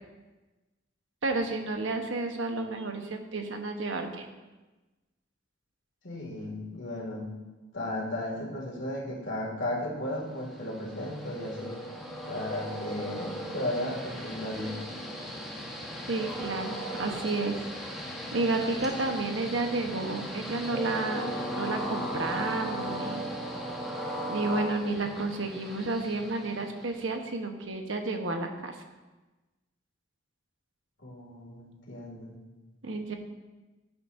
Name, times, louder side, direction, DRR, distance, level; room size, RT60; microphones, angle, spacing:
voice 1, 1.2-4.3 16.1-17.6 18.3-23.2 24.3-28.8 32.8-33.1, right 2 dB, 75° right, 4 dB, 1.2 m, -31 dB
voice 2, 6.0-7.3 7.7-11.8 12.2-14.8 31.0-32.3, left 1 dB, 70° left, -2 dB, 2.5 m, -35 dB
Train, 10.4-27.1, equal, ahead, 1.3 m, -37 dB
15.5 x 8.5 x 2.7 m, 1.2 s
head